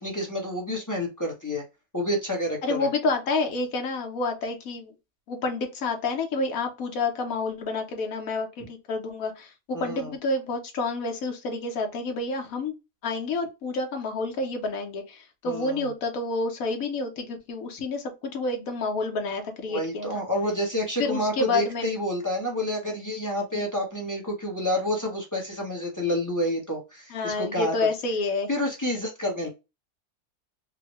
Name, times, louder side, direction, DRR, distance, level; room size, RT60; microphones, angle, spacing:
voice 1, 0.0-1.6 1.9-2.9 9.7-10.1 15.4-15.9 19.7-27.9 28.5-29.5, left 1 dB, 15° left, 0.8 m, -29 dB
voice 2, 2.6-4.9 5.3-12.7 13.0-20.2 21.0-21.9 23.5-23.6 27.1-28.5, left 3 dB, 65° left, 1.3 m, -29 dB
3.8 x 2.1 x 3.0 m
omnidirectional pair, 1.7 m